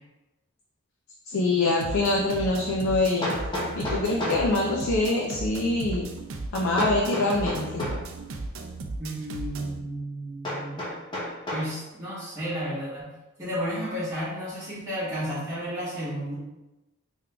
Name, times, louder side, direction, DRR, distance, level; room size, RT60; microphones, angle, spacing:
voice 1, 1.3-3.3 3.8-6.1 6.5-7.9, left 2 dB, 75° left, -1 dB, 0.4 m, -24 dB
sound 1, 1.8-9.8, right 3 dB, 70° right, 0.4 m, -36 dB
Hammer, 3.2-4.5 6.8-8.1 10.4-11.7, left 1 dB, 20° left, 0.7 m, -31 dB
voice 2, 9.0-10.8 11.5-13.1 13.4-16.4, equal, 15° right, -13 dB, 1.4 m, -32 dB
3.6 x 3.4 x 2.2 m, 1.0 s
head